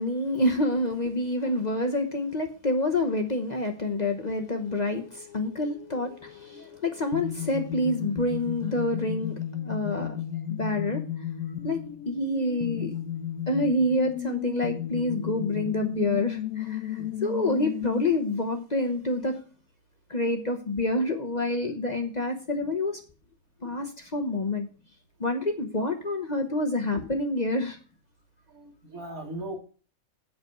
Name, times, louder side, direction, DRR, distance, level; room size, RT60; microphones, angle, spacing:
voice 1, 0.0-10.2 10.6-11.0 11.6-13.0 13.5-19.4 20.1-23.0 23.6-24.7 25.2-27.8, left 1 dB, 35° left, 1.0 m, -27 dB
sound 1, 4.2-18.0, left 11 dB, 80° left, 1.0 m, -35 dB
voice 2, 28.5-29.5, right 1 dB, 75° right, 3.2 m, -39 dB
8.1 x 5.9 x 6.6 m
omnidirectional pair, 1.5 m